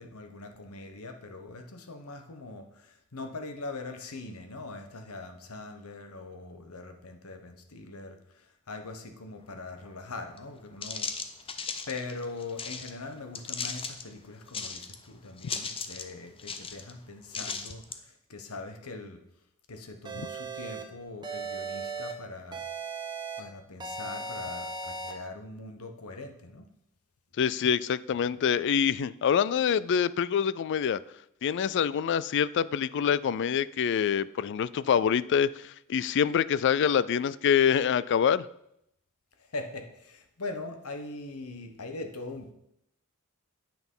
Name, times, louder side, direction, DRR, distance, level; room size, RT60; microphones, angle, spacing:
voice 1, 0.0-11.1 11.9-19.2 19.7-22.6 23.4-26.7 39.4-42.5, left 3 dB, 75° left, 1.2 m, -42 dB
sound 1, 10.4-10.5 10.8-12.9 13.4-14.0 14.5-15.1 15.4-16.1 16.4-16.9 17.3-18.0, left 5 dB, 25° left, 0.7 m, -36 dB
sound 2, 20.0-20.8 21.2-22.1 22.5-23.4 23.8-25.1, right 4 dB, 20° right, 1.2 m, -37 dB
voice 2, 27.4-31.0 31.4-38.5, left 7 dB, 55° left, 0.3 m, -25 dB
9.0 x 6.0 x 5.5 m
head